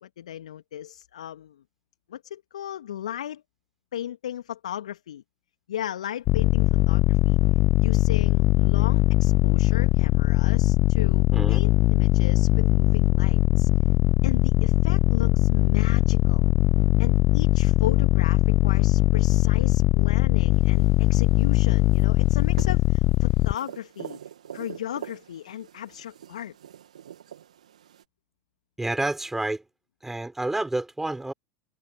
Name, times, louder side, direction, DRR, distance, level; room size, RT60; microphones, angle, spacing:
voice 1, 0.0-1.6 2.1-3.4 3.9-5.2 5.7-7.4 7.8-13.7 14.2-16.5 17.0-24.2 24.5-26.5, left 11 dB, 70° left, 2.4 m, -36 dB
sound 1, 6.3-23.6, left 18 dB, 45° left, 0.5 m, -20 dB
sound 2, 20.5-28.0, right 10 dB, 75° right, 2.5 m, -45 dB
voice 2, 28.8-29.6 30.0-31.3, right 2 dB, 10° right, 6.8 m, -29 dB
figure-of-eight pair, 75°, 4 cm